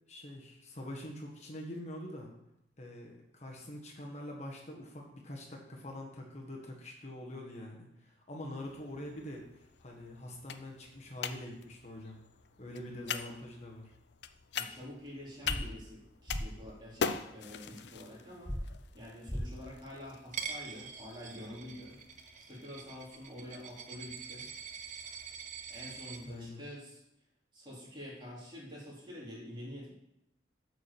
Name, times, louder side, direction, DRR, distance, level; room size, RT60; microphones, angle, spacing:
voice 1, 0.1-2.3 2.8-12.2 12.6-13.9 26.2-26.6, left 1 dB, 40° left, 0 dB, 1.4 m, -45 dB
sound 1, 8.6-26.5, left 6 dB, 70° left, 0.5 m, -44 dB
voice 2, 13.0-13.4 14.5-18.6 18.9-22.0 22.4-24.5 25.7-27.0 27.5-29.9, left 1 dB, 25° right, -5 dB, 3.3 m, -47 dB
sound 2, 15.5-15.6 16.3-16.4 18.5-18.6 19.3-19.4, equal, 5° left, 0.8 m, -35 dB
Coin (dropping), 20.3-26.2, right 6 dB, 45° right, 0.8 m, -45 dB
8.7 x 4.8 x 6.9 m, 0.83 s
head